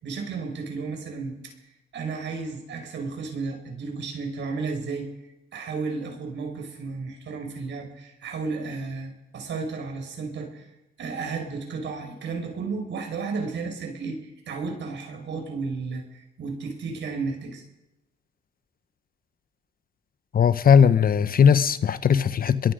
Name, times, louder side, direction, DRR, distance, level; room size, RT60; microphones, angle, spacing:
voice 1, 0.0-1.5 1.9-5.1 5.5-10.7 11.0-17.6, right 4 dB, 65° right, 5.9 m, -33 dB
voice 2, 20.3-22.7, left 7 dB, 45° left, 1.0 m, -18 dB
25.0 x 22.5 x 5.2 m
cardioid pair, 90°, 20 cm